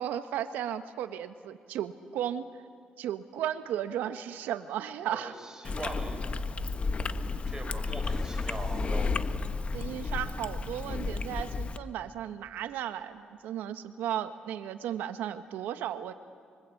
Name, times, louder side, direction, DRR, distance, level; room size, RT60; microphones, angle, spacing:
voice 1, 0.0-2.5 3.0-5.3 9.7-16.1, right 10 dB, 90° right, 10 dB, 1.2 m, -35 dB
voice 2, 5.1-6.5 7.5-9.3, right 2 dB, 20° right, 2 dB, 7.7 m, -41 dB
Chewing mastication, 5.6-11.8, left 4 dB, 45° left, 1.3 m, -32 dB
sound 1, 8.0-11.4, left 2 dB, 20° left, 1.0 m, -43 dB
28.5 x 24.5 x 8.4 m, 2.2 s
supercardioid pair, 65°, 3 cm